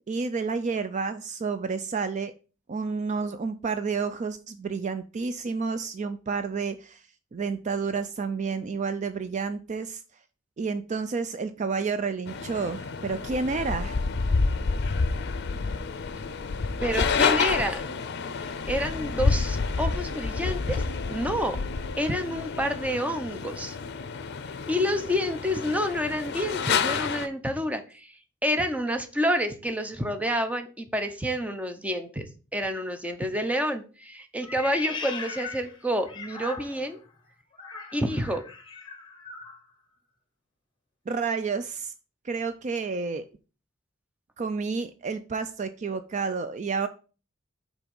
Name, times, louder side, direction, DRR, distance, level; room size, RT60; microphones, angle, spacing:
voice 1, 0.1-2.3 2.7-7.0 7.3-10.0 10.6-14.0 41.1-41.9 42.2-43.2 44.4-46.9, right 4 dB, 40° right, 10 dB, 0.4 m, -30 dB
sound 1, 12.3-27.3, left 4 dB, 55° left, 0.5 m, -29 dB
voice 2, 16.8-17.8 18.7-20.8 21.1-21.6 22.0-23.8 24.7-32.3 32.5-37.0 37.9-38.4, equal, 5° right, 7 dB, 0.7 m, -28 dB
Meow, 34.4-37.0 37.5-39.6, left 5 dB, 25° left, 1.2 m, -39 dB
5.9 x 4.0 x 5.3 m, 0.35 s
head